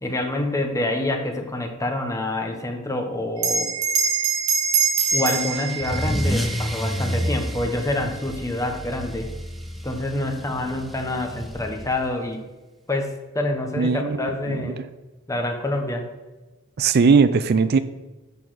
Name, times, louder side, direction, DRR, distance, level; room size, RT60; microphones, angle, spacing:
voice 1, 0.0-3.7 5.1-9.3 9.8-12.4 12.9-14.8 15.3-16.1, left 1 dB, 15° left, 3 dB, 1.1 m, -27 dB
Bell, 3.4-8.2, right 6 dB, 85° right, 1.1 m, -25 dB
Car / Engine starting / Accelerating revving vroom, 5.0-12.2, equal, ahead, 0.7 m, -30 dB
voice 2, 13.8-14.9 16.8-17.8, right 5 dB, 50° right, 12 dB, 0.4 m, -19 dB
10.5 x 4.1 x 6.8 m, 1.2 s
head